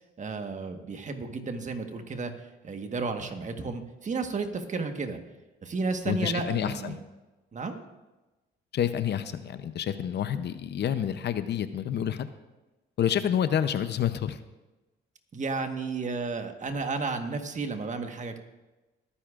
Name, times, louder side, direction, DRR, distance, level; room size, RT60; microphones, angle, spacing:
voice 1, 0.2-2.3 2.6-5.2 5.6-7.0 7.5-7.8 15.3-18.4, right 4 dB, 40° right, 6 dB, 1.4 m, -32 dB
voice 2, 6.1-7.0 8.7-12.3 13.0-14.4, left 9 dB, 60° left, 11 dB, 0.7 m, -28 dB
21.5 x 9.9 x 2.5 m, 1.1 s
cardioid pair, 90°, 20 cm